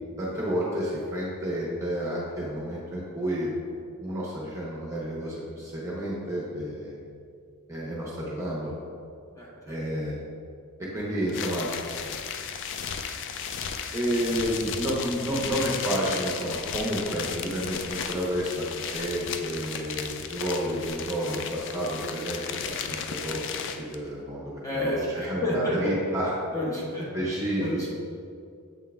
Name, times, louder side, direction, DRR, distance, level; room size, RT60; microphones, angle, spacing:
voice 1, 0.2-3.6 4.0-7.0 7.7-8.7 9.7-10.2 10.9-11.7 13.9-26.3 27.1-27.9, equal, 15° right, -6 dB, 0.9 m, -30 dB
voice 2, 9.3-9.8 24.6-26.0 26.5-27.0 27.6-27.9, left 1 dB, 15° left, -5 dB, 1.2 m, -29 dB
sound 1, 11.3-24.0, left 7 dB, 55° left, 0.4 m, -35 dB
7.7 x 3.7 x 3.5 m, 2.4 s
head